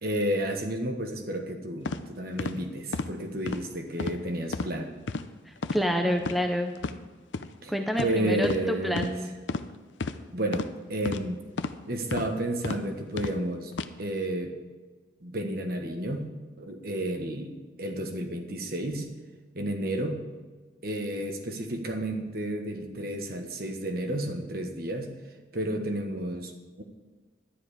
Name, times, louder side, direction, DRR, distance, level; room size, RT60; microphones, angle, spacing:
voice 1, 0.0-4.9 7.6-7.7 8.0-9.2 10.3-11.4 11.9-13.7 14.0-14.5 15.2-16.3 16.6-17.5 17.8-19.1 19.5-20.2 20.8-25.1 25.5-26.8, right 1 dB, 50° right, 4 dB, 1.4 m, -31 dB
sound 1, 1.8-2.0 2.4-2.5 2.9-3.1 3.5-3.6 4.0-4.2 4.5-4.7 5.1-5.2 5.6-5.8 6.2-6.4 6.8-6.9 7.3-7.5 7.9-8.1 8.4-8.6 8.9-9.1 9.5-9.7 10.0-10.2 10.5-10.7 11.0-11.2 11.6-11.8 12.1-12.3 12.6-12.8 13.2-13.4 13.7-13.9, left 3 dB, 80° left, 0.6 m, -31 dB
voice 2, 5.5-6.7 7.7-9.3, equal, ahead, 4 dB, 0.6 m, -28 dB
12.0 x 10.5 x 5.0 m, 1.4 s
head